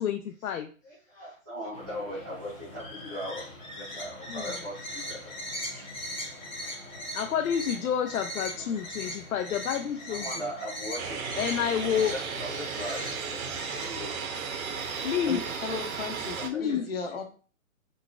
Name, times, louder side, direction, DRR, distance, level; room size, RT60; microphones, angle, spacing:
voice 1, 0.0-0.7 4.3-4.5 6.6-6.7 7.1-10.5 11.4-12.1 15.0-15.4 16.4-16.8, left 9 dB, 90° left, 6 dB, 0.5 m, -29 dB
voice 2, 0.8-5.3 5.6-5.9 8.5-8.7 9.0-9.3 10.1-11.3 12.1-13.1 13.7-14.3 16.3-17.2, equal, 15° right, -12 dB, 0.6 m, -39 dB
sound 1, 1.7-15.2, left 1 dB, 5° left, 1.2 m, -40 dB
sound 2, 11.0-16.5, right 5 dB, 80° right, 0.7 m, -35 dB
voice 3, 15.3-17.2, left 4 dB, 45° left, 2 dB, 0.7 m, -36 dB
3.9 x 2.4 x 2.4 m, 0.39 s
hypercardioid pair, 175°, 42 cm